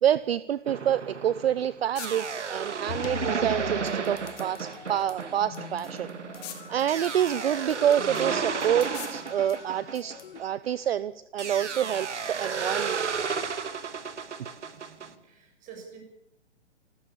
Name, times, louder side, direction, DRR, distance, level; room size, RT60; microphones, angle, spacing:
voice 1, 0.0-6.1 6.4-13.1, right 10 dB, 55° right, 17 dB, 0.8 m, -27 dB
sound 1, 0.7-10.8 11.4-15.1, right 5 dB, 75° right, 2.3 m, -33 dB
sound 2, 1.1-10.6, left 12 dB, 35° left, 4.7 m, -50 dB
sound 3, 2.9-10.4, left 8 dB, 55° left, 1.6 m, -43 dB
voice 2, 14.6-16.0, right 6 dB, 20° right, 4 dB, 7.1 m, -49 dB
28.5 x 13.5 x 8.7 m, 0.80 s
hypercardioid pair, 135°, 35 cm